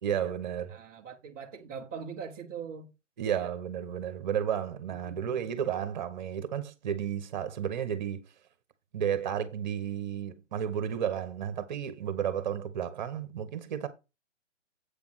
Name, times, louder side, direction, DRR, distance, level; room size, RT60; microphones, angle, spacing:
voice 1, 0.0-0.8 3.2-8.3 8.9-13.9, right 9 dB, 40° right, 1.3 m, -32 dB
voice 2, 0.7-2.9 4.9-5.4, right 6 dB, 15° right, 0.8 m, -42 dB
8.4 x 3.6 x 6.3 m
hypercardioid pair, 160°, 36 cm